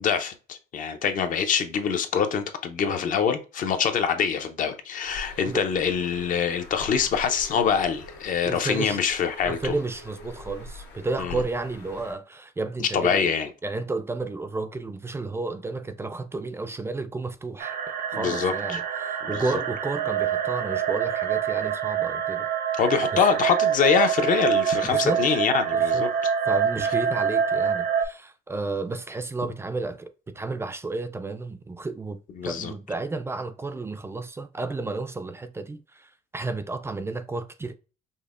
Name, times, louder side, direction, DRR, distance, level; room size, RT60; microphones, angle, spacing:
voice 1, 0.0-9.7 11.2-11.4 12.9-13.5 18.1-18.8 19.2-19.4 22.8-26.1 32.4-32.7, left 7 dB, 55° left, 0.6 m, -25 dB
Bird, 5.0-12.1, left 1 dB, 85° left, 1.2 m, -43 dB
voice 2, 8.4-9.0 9.4-13.3 13.6-17.8 18.1-22.5 23.1-23.2 24.8-25.2 25.7-26.1 26.5-30.1 30.3-32.2 32.5-37.8, right 3 dB, 15° right, 0.3 m, -32 dB
sound 1, 17.6-28.0, right 8 dB, 60° right, 0.6 m, -26 dB
5.3 x 2.1 x 2.4 m
cardioid pair, 110°, 17 cm